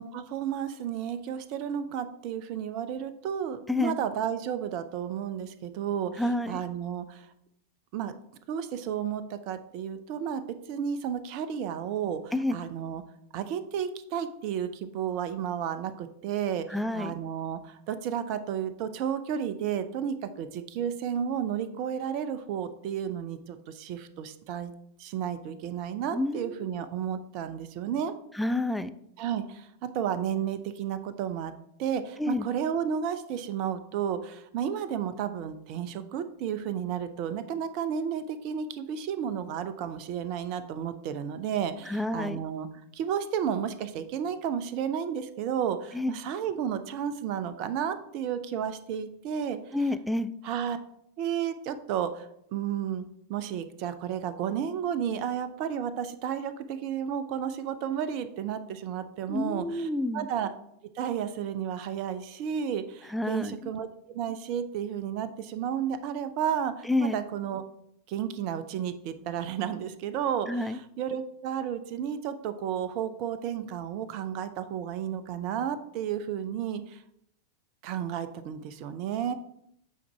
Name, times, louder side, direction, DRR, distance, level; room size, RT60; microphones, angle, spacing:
voice 1, 0.0-6.2 6.5-7.3 7.9-8.1 8.5-10.4 10.7-13.0 13.3-16.7 16.9-24.7 25.0-28.1 29.2-31.5 31.8-42.7 42.9-49.6 50.4-50.8 51.2-53.0 53.3-59.9 60.1-60.5 60.9-67.6 68.1-77.0 77.8-79.3, right 8 dB, 45° right, 11 dB, 0.6 m, -32 dB
voice 2, 3.7-4.0 6.2-6.6 12.3-12.6 16.7-17.1 26.1-26.8 28.3-28.9 32.2-32.5 41.9-42.4 45.9-46.1 49.7-50.3 59.3-60.3 63.1-63.5 66.8-67.2 70.5-70.8, left 2 dB, ahead, 10 dB, 0.4 m, -29 dB
8.5 x 3.9 x 4.5 m, 0.74 s
figure-of-eight pair, 90°, 0 cm